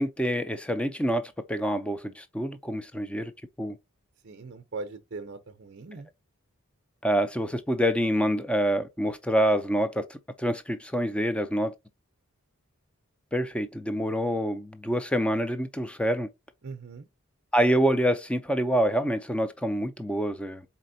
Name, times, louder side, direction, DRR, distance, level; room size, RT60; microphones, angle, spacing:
voice 1, 0.0-3.3 3.6-3.8 7.0-11.7 13.3-16.3 17.5-20.6, equal, 5° left, 0.4 m, -26 dB
voice 2, 4.2-6.1 16.6-17.1, right 3 dB, 50° right, 0.6 m, -40 dB
4.2 x 4.1 x 2.6 m
head